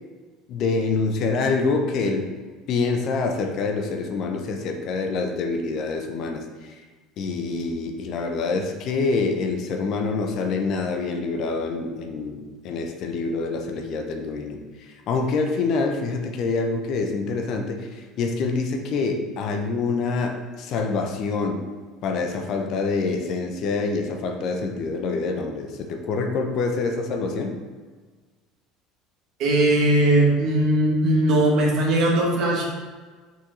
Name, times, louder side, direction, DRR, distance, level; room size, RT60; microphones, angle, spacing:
voice 1, 0.5-2.3 2.7-6.7 7.2-21.6 22.0-27.5, left 4 dB, 50° left, 3 dB, 1.0 m, -26 dB
voice 2, 29.4-32.6, right 1 dB, 55° right, -2 dB, 2.1 m, -19 dB
6.1 x 5.5 x 4.0 m, 1.4 s
figure-of-eight pair, 65°, 0 cm